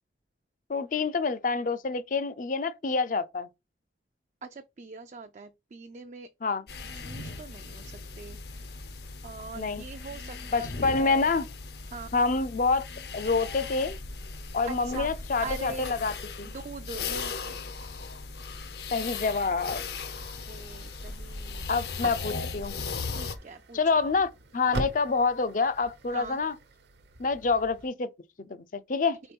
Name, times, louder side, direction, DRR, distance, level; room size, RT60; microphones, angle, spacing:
voice 1, 0.7-3.5 6.4-6.6 9.6-9.8 10.5-11.4 12.1-12.8 13.1-14.0 14.5-16.5 18.9-19.8 21.7-22.7 23.7-26.6 27.2-28.1 28.4-29.2, left 4 dB, 45° left, 0.5 m, -27 dB
voice 2, 4.4-6.3 6.9-8.8 9.2-11.3 11.9-12.2 14.6-15.1 15.4-16.0 16.4-17.6 20.4-21.7 23.1-23.8 26.1-26.4, right 4 dB, 40° right, 0.4 m, -42 dB
sound 1, 6.7-23.3, left 4 dB, 65° left, 0.8 m, -38 dB
sound 2, 19.3-27.9, right 1 dB, 75° right, 1.0 m, -43 dB
4.6 x 4.4 x 5.2 m
head